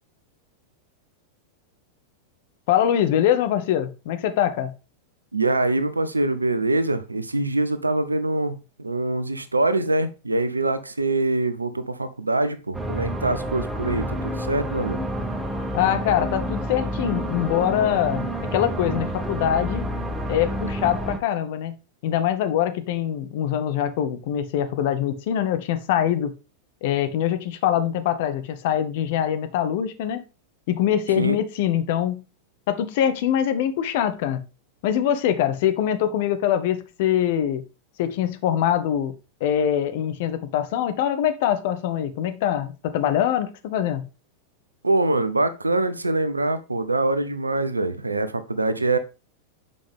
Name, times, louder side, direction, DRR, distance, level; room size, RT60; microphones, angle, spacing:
voice 1, 2.7-4.7 15.7-19.9 20.3-21.7 22.0-26.3 26.8-30.2 30.7-32.2 32.7-34.4 34.8-37.6 38.0-39.1 39.4-44.1, left 10 dB, 50° left, 0.9 m, -23 dB
voice 2, 5.3-15.0 31.1-31.4 44.8-49.0, right 2 dB, 80° right, 0.6 m, -24 dB
sound 1, 12.7-21.2, equal, 10° right, 0.9 m, -29 dB
7.0 x 5.1 x 3.4 m
figure-of-eight pair, 90°, 0 cm